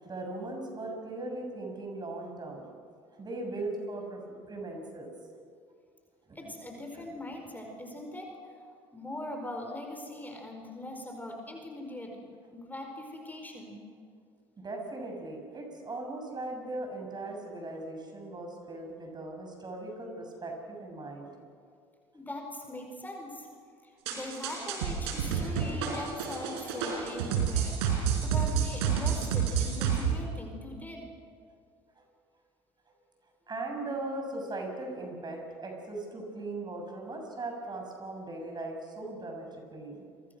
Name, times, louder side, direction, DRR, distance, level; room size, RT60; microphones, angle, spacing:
voice 1, 0.0-2.7 3.1-5.1 6.3-6.5 14.6-21.3 32.0-32.1 33.5-40.0, right 2 dB, 30° right, 2 dB, 7.2 m, -39 dB
voice 2, 6.3-8.4 8.9-13.8 22.1-23.5 24.1-27.8 28.2-31.1, left 1 dB, 15° left, 2 dB, 4.8 m, -41 dB
sound 1, 24.1-30.0, right 7 dB, 85° right, 4.9 m, -29 dB
29.0 x 24.5 x 6.3 m, 2.2 s
hypercardioid pair, 70°, 13 cm